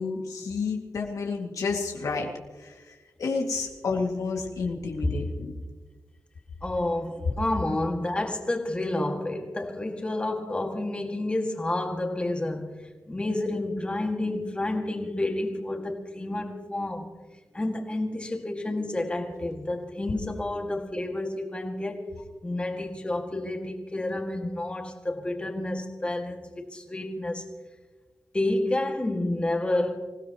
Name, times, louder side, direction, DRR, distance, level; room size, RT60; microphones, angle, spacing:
voice 1, 0.0-2.3 2.6-2.8 3.2-5.5, left 4 dB, 80° left, 2.3 m, -30 dB
voice 2, 6.6-17.2 17.5-22.1 22.4-27.5 28.3-30.0, left 2 dB, 20° left, 2.1 m, -30 dB
26.5 x 17.0 x 3.1 m
wide cardioid pair, 135°, 6 cm